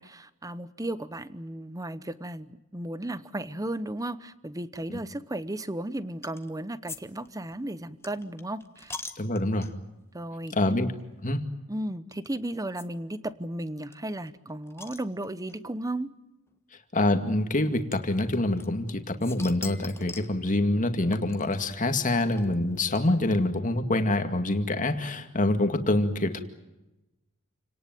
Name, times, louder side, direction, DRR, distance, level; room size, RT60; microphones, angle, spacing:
voice 1, 0.0-9.0 10.1-10.5 11.7-16.1, right 1 dB, 15° right, 15 dB, 0.9 m, -35 dB
sound 1, 6.2-6.5 6.9-7.0 7.2-10.0 10.6-10.7 11.0-11.1 12.1-12.3 12.8-12.9 13.1-13.2 13.4-13.5 13.9-15.6 16.5-16.6 17.9-18.9 19.2-20.4 21.1-23.4, left 3 dB, 10° left, 1.5 m, -43 dB
voice 2, 9.2-9.7 10.5-10.9 11.2-11.4 16.9-26.4, left 1 dB, 35° left, 7 dB, 2.2 m, -26 dB
29.0 x 18.5 x 9.2 m, 0.98 s
head